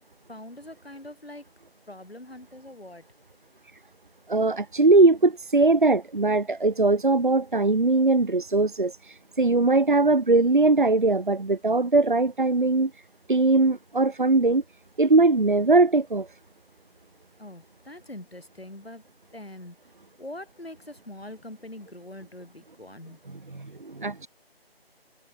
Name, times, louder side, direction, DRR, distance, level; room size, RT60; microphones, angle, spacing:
voice 1, 0.3-1.5 1.9-3.0 17.4-19.0 19.3-19.8 20.2-23.2, left 1 dB, 75° left, 7.7 m, -43 dB
voice 2, 4.3-9.0 9.4-12.9 13.3-14.6 15.0-16.3 23.5-24.3, right 3 dB, 55° right, 1.7 m, -20 dB
figure-of-eight pair, 160°, 31 cm